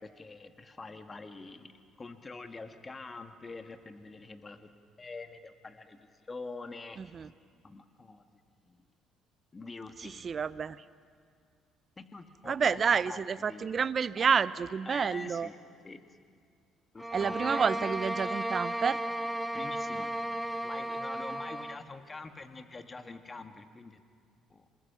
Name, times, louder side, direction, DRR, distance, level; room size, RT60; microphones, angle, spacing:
voice 1, 0.0-1.7 2.0-4.7 5.0-7.0 7.6-8.2 8.6-8.8 9.5-10.5 12.0-12.8 13.1-13.8 14.8-15.6 15.8-16.1 16.9-17.9 19.5-20.1 20.6-24.0 24.5-24.6, left 3 dB, 30° left, 7 dB, 1.7 m, -45 dB
voice 2, 7.0-7.3 10.0-10.8 12.5-15.5 17.1-19.0, right 6 dB, 45° right, 17 dB, 0.6 m, -29 dB
sound 1, 17.0-21.8, right 1 dB, 10° right, 0.7 m, -34 dB
Wind instrument woodwind instrument, 18.5-21.9, right 8 dB, 70° right, 1.1 m, -57 dB
27.0 x 19.5 x 6.1 m, 2.2 s
hypercardioid pair, 60°, 0 cm